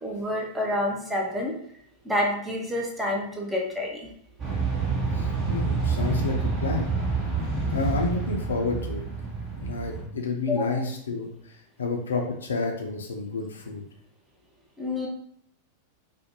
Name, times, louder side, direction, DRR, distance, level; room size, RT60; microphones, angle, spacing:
voice 1, 0.0-1.5 2.0-4.1 10.5-10.9 14.8-15.1, left 1 dB, 10° right, -1 dB, 0.6 m, -28 dB
sound 1, 4.4-10.1, right 4 dB, 25° right, 0.9 m, -28 dB
voice 2, 5.1-6.9 7.7-9.0 9.5-11.3 11.8-13.8, left 3 dB, 70° left, 2 dB, 0.4 m, -30 dB
2.5 x 2.1 x 2.8 m, 0.68 s
figure-of-eight pair, 90°, 0 cm